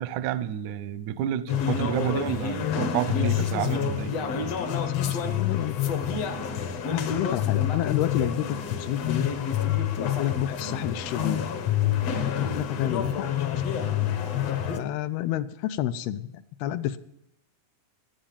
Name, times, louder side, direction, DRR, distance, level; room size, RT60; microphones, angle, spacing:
voice 1, 0.0-4.1, right 11 dB, 80° right, 1.7 m, -29 dB
sound 1, 1.5-14.8, left 9 dB, 65° left, 1.6 m, -27 dB
voice 2, 5.0-5.8 6.3-6.5 6.7-9.3 10.0-11.4 12.4-13.3 13.5-14.0 14.8-17.0, left 12 dB, 85° left, 2.6 m, -30 dB
19.5 x 8.9 x 7.3 m
omnidirectional pair, 4.4 m